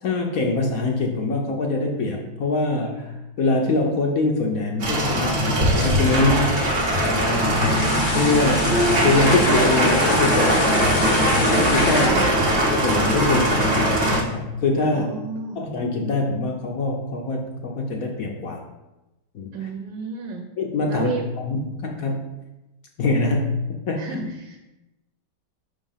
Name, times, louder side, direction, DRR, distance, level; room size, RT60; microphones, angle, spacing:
voice 1, 0.0-12.2 12.7-15.1 15.6-18.6 19.3-19.5 20.6-21.1 21.4-22.3 23.0-23.5 23.9-24.0, left 3 dB, 65° left, 1 dB, 0.9 m, -24 dB
sound 1, 4.8-14.2, right 1 dB, 45° right, 1.0 m, -20 dB
sound 2, 7.4-12.1, left 4 dB, 85° left, 1.8 m, -29 dB
voice 2, 11.9-12.7 14.9-15.6 19.5-20.5 20.9-21.2 24.0-24.6, right 5 dB, 70° right, 1 dB, 1.3 m, -32 dB
5.9 x 3.8 x 5.6 m, 1.0 s
omnidirectional pair, 2.3 m